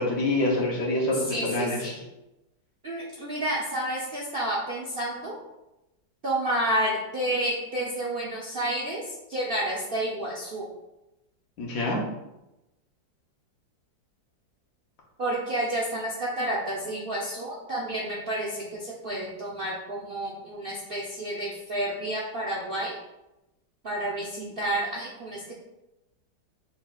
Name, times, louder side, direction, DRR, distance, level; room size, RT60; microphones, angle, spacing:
voice 1, 0.0-2.0 11.6-12.0, left 2 dB, 55° left, -2 dB, 1.3 m, -26 dB
voice 2, 1.1-1.9 2.8-5.4 6.2-10.7 15.2-23.0 23.8-25.5, right 1 dB, 80° right, -5 dB, 0.5 m, -30 dB
5.5 x 4.0 x 2.4 m, 0.95 s
omnidirectional pair, 2.0 m